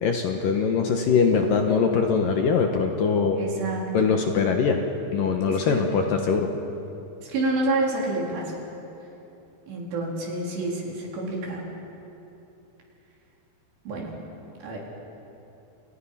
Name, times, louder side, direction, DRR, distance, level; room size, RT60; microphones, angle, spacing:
voice 1, 0.0-3.4 3.9-4.8 5.1-6.5, left 5 dB, 65° left, 3 dB, 2.5 m, -22 dB
voice 2, 3.3-3.8 5.4-5.8 7.2-8.6 9.7-11.7 13.9-14.1 14.6-14.8, right 2 dB, 70° right, -2 dB, 6.4 m, -28 dB
29.5 x 28.5 x 5.8 m, 2.9 s
omnidirectional pair, 5.1 m